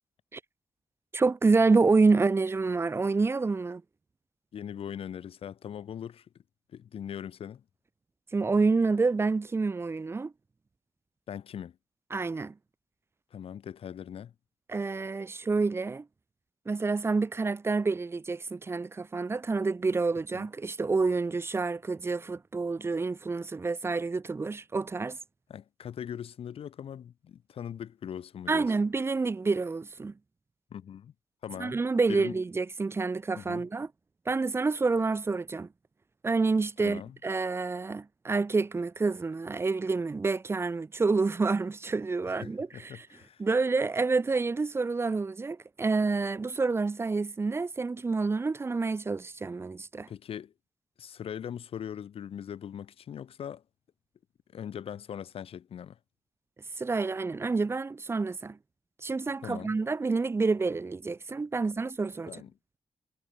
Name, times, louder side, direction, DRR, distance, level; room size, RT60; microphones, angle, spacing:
voice 1, 1.1-3.8 8.3-10.3 12.1-12.5 14.7-16.0 16.7-25.2 28.5-30.1 31.6-33.9 34.3-35.7 36.2-43.1 43.4-50.1 56.8-58.6 59.0-62.3, right 4 dB, 25° right, 2.5 m, -28 dB
voice 2, 4.5-6.4 6.7-7.6 11.3-11.8 13.3-14.3 20.3-20.5 25.5-28.7 30.7-31.1 31.4-31.8 32.1-32.4 33.4-33.7 36.8-37.2 42.3-43.4 50.1-50.5 51.0-53.6 54.5-56.0 59.4-59.8 62.3-62.5, left 9 dB, 75° left, 4.0 m, -40 dB
wide cardioid pair, 170°, 10 cm